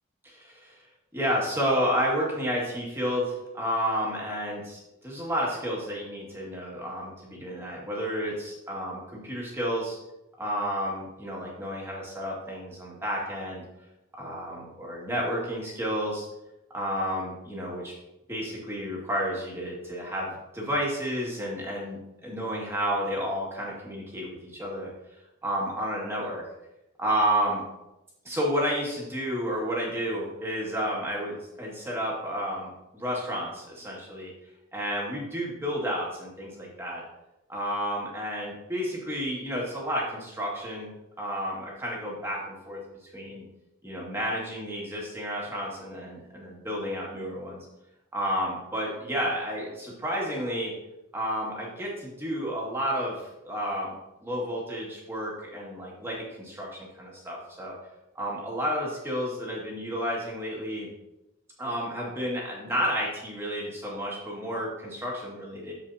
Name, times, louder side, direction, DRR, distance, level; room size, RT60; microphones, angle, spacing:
voice 1, 0.2-0.8 1.1-10.0 10.4-13.6 14.2-16.3 16.7-17.9 18.3-24.9 25.4-26.4 27.0-27.6 28.2-34.3 34.7-37.0 37.5-40.9 41.2-42.8 43.1-43.4 43.8-47.6 48.1-50.7 51.1-53.9 54.2-57.7 58.2-60.9 61.6-65.7, equal, 10° right, -4 dB, 2.1 m, -31 dB
14.0 x 5.0 x 2.8 m, 0.93 s
head